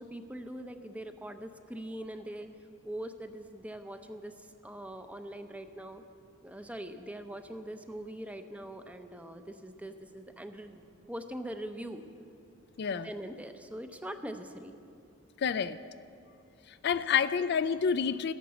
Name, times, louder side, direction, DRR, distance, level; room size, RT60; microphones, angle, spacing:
voice 1, 0.0-2.5 2.8-6.0 6.4-12.0 12.9-14.8, right 1 dB, 5° right, 8 dB, 0.7 m, -42 dB
voice 2, 12.8-13.1 15.4-15.8 16.8-18.3, left 7 dB, 55° left, 13 dB, 0.4 m, -28 dB
14.0 x 11.0 x 7.1 m, 2.5 s
head